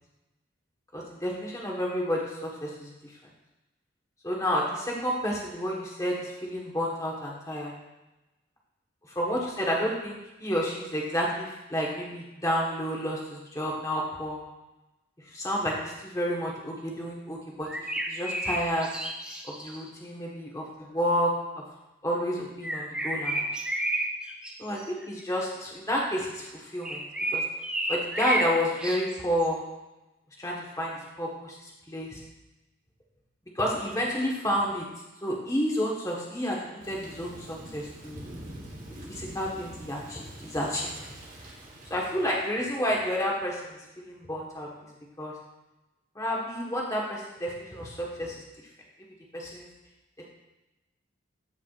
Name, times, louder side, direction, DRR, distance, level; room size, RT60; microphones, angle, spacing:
voice 1, 0.9-3.1 4.2-7.7 9.1-14.4 15.3-18.9 19.4-21.6 22.0-23.5 24.6-24.8 25.1-27.0 27.3-27.4 27.9-29.6 30.4-32.2 33.5-34.9 35.2-38.2 39.1-41.1 41.9-45.3 46.1-48.7 49.3-49.7, equal, 15° left, -2 dB, 1.3 m, -30 dB
sound 1, 17.7-19.8 22.6-24.5 24.8-25.0 26.8-28.5 28.8-29.5, right 1 dB, 5° right, 0.6 m, -31 dB
Thunder / Rain, 36.8-42.5, right 1 dB, 40° right, 1.3 m, -45 dB
14.0 x 4.8 x 2.4 m, 1.0 s
head